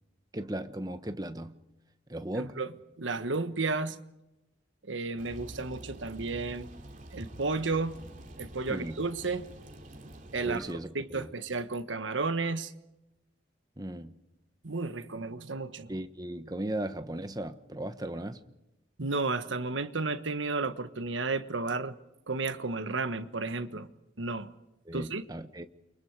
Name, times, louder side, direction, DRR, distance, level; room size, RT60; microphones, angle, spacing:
voice 1, 0.3-1.6 2.1-2.6 8.7-9.0 10.4-11.3 13.8-14.2 15.9-18.4 24.9-25.7, right 1 dB, 20° right, 1.2 m, -37 dB
voice 2, 2.3-2.7 3.0-4.0 4.9-6.7 7.1-8.0 8.4-9.4 10.3-12.7 14.6-15.9 19.0-21.9 22.3-23.9 24.2-24.5 24.9-25.2, right 3 dB, 90° right, 1.4 m, -32 dB
sound 1, 5.2-10.7, right 1 dB, 45° right, 2.9 m, -47 dB
29.5 x 24.0 x 4.8 m
head